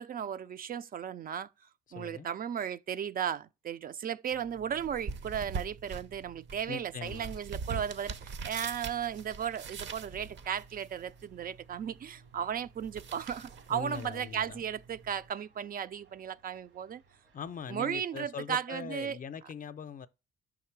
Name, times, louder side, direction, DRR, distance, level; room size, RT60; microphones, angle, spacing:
voice 1, 0.0-1.5 1.9-17.0 17.7-19.2, right 8 dB, 45° right, 0.4 m, -35 dB
voice 2, 1.9-2.3 6.7-7.4 13.7-14.6 17.3-20.1, left 7 dB, 45° left, 0.5 m, -41 dB
sound 1, 4.3-15.3, right 5 dB, 65° right, 0.8 m, -44 dB
sound 2, 7.0-17.7, right 3 dB, 80° right, 1.9 m, -66 dB
5.7 x 3.7 x 4.6 m
cardioid pair, 90°, 20 cm